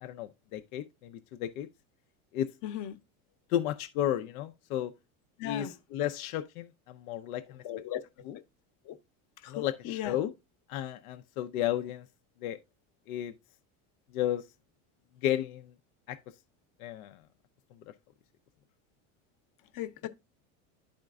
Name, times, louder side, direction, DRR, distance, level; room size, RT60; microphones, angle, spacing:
voice 1, 0.0-1.7 2.3-2.5 3.5-4.9 5.4-7.6 8.3-8.4 9.5-10.3 10.7-12.1 12.4-12.6 13.1-13.3 14.1-14.4 15.2-15.7 16.1-16.2 16.8-17.2, left 11 dB, 90° left, 0.7 m, -33 dB
voice 2, 2.6-3.0 5.4-5.7 7.6-8.0 8.9-9.0 9.4-10.2 19.7-20.1, left 12 dB, 50° left, 0.9 m, -37 dB
12.0 x 4.4 x 2.4 m
supercardioid pair, 125°, 41 cm